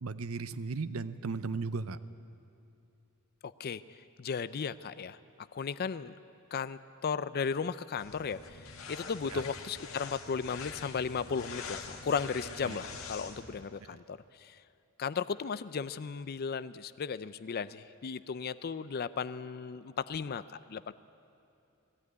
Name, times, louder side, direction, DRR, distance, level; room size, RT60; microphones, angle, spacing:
voice 1, 0.0-2.0 9.3-9.4 12.6-12.8, right 4 dB, 75° right, 14 dB, 0.7 m, -36 dB
voice 2, 3.4-6.2 6.5-14.6 15.0-20.9, left 6 dB, 45° left, 14 dB, 0.4 m, -36 dB
sound 1, 8.0-13.6, left 4 dB, 70° left, 1.8 m, -45 dB
20.0 x 16.0 x 9.6 m, 2.7 s
head